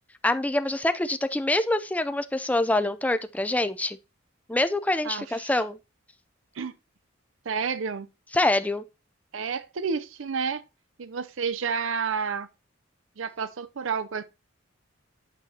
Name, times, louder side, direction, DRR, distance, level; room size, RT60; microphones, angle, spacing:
voice 1, 0.2-4.0 4.5-5.8 8.3-8.8, left 1 dB, 5° left, 0.4 m, -25 dB
voice 2, 5.0-5.6 6.5-6.7 7.4-8.1 9.3-10.6 11.0-12.5 13.2-14.2, right 6 dB, 75° right, 0.6 m, -30 dB
9.1 x 7.5 x 2.8 m
head